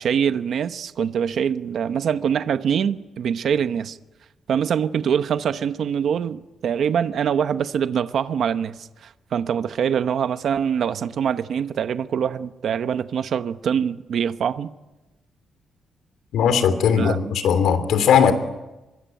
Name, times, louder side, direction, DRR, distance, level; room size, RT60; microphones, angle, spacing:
voice 1, 0.0-4.0 4.5-14.7 17.0-17.2, right 8 dB, 55° right, 0.9 m, -24 dB
voice 2, 16.3-18.3, left 7 dB, 85° left, 3.1 m, -18 dB
25.5 x 22.5 x 9.2 m
wide cardioid pair, 175°, 0 cm